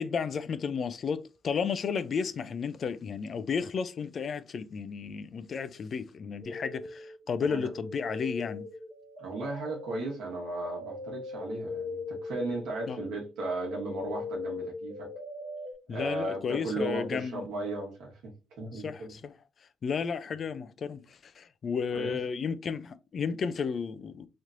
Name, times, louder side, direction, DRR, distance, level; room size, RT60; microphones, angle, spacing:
voice 1, 0.0-8.7 12.9-13.0 15.9-17.4 18.7-19.3 19.8-24.3, left 6 dB, 50° left, 0.4 m, -33 dB
sound 1, 6.4-7.2 7.7-15.7, left 3 dB, 10° right, 0.9 m, -40 dB
voice 2, 9.2-15.1 15.9-18.2 18.6-19.1 21.9-22.2, right 2 dB, 80° right, 1.2 m, -35 dB
3.2 x 2.9 x 2.5 m
cardioid pair, 90°, 0 cm